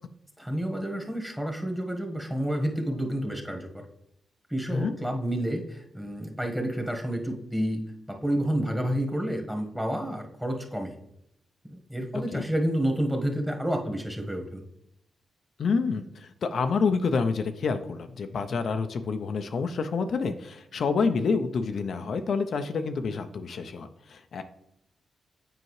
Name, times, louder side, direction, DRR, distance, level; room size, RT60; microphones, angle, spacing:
voice 1, 0.4-3.8 4.5-7.8 8.1-10.9 11.6-14.6, equal, 5° right, 3 dB, 1.4 m, -29 dB
voice 2, 15.6-24.4, left 4 dB, 65° left, 7 dB, 0.5 m, -28 dB
7.8 x 4.6 x 3.2 m, 0.78 s
cardioid pair, 70°, 0 cm